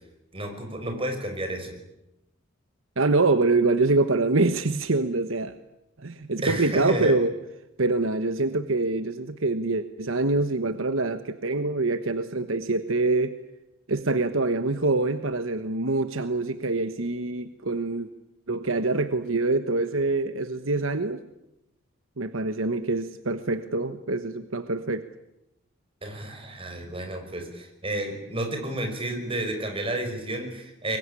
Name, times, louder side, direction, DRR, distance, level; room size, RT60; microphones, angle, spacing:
voice 1, 0.3-1.7 6.4-7.1 26.0-31.0, right 1 dB, 25° right, 4 dB, 5.8 m, -31 dB
voice 2, 3.0-5.5 6.0-7.4 7.8-13.3 13.9-18.1 18.5-21.2 22.2-25.0, right 3 dB, 70° right, 10 dB, 1.2 m, -25 dB
24.0 x 23.0 x 9.9 m, 0.90 s
head